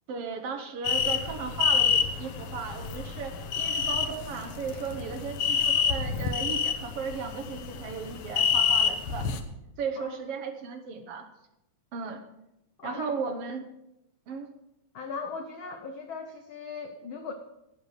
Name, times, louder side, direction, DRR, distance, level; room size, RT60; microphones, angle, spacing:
voice 1, 0.1-9.3 9.8-11.3 11.9-12.2 12.8-13.6 14.3-14.5, right 5 dB, 65° right, 6 dB, 1.6 m, -36 dB
sound 1, 0.8-9.4, left 7 dB, 65° left, 1.4 m, -28 dB
voice 2, 12.8-13.1 14.9-17.3, left 5 dB, 80° left, 5 dB, 1.1 m, -38 dB
12.0 x 9.6 x 4.9 m, 0.88 s
omnidirectional pair, 3.5 m